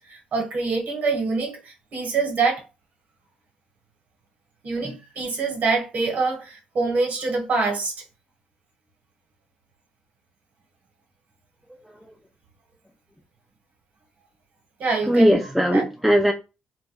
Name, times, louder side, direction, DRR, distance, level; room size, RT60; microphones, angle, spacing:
voice 1, 0.0-2.6 4.6-7.9 14.8-15.3 15.7-15.8, right 4 dB, 60° right, 1.3 m, -25 dB
voice 2, 15.1-16.3, equal, ahead, 0.5 m, -19 dB
2.5 x 2.2 x 3.8 m
cardioid pair, 80°, 3 cm